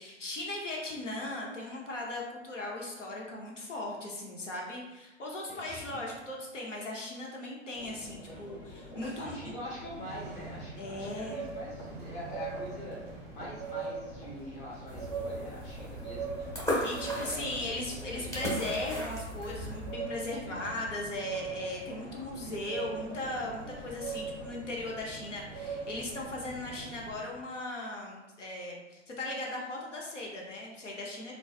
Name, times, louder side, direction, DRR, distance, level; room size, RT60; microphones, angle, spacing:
voice 1, 0.0-9.5 10.8-11.4 16.8-31.3, left 2 dB, 90° left, -2 dB, 0.7 m, -38 dB
voice 2, 5.5-6.1 9.2-13.0 13.3-16.8 17.1-17.8 18.2-18.5 20.5-20.8, left 1 dB, 25° left, -5 dB, 1.2 m, -44 dB
sound 1, 7.7-27.0, left 1 dB, 55° left, 1.2 m, -50 dB
sound 2, 9.8-27.2, right 5 dB, 25° right, 0.6 m, -42 dB
sound 3, 14.9-19.9, left 1 dB, 10° left, 0.8 m, -37 dB
3.8 x 2.3 x 2.3 m, 1.1 s
figure-of-eight pair, 105°, 36 cm